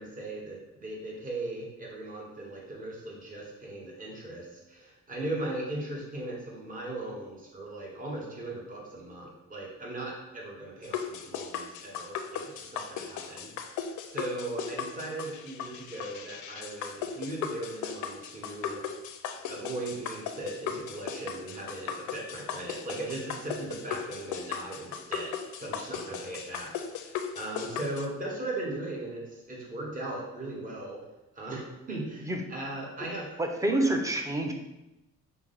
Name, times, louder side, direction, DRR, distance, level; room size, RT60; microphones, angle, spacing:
voice 1, 0.0-18.9 19.5-31.0 31.3-33.3 33.7-33.8, right 2 dB, 30° right, -3 dB, 1.1 m, -38 dB
sound 1, 10.8-28.1, left 7 dB, 85° left, 0.5 m, -37 dB
voice 2, 33.4-34.5, right 1 dB, 10° right, 3 dB, 0.6 m, -27 dB
5.8 x 2.1 x 3.8 m, 0.96 s
cardioid pair, 105°, 29 cm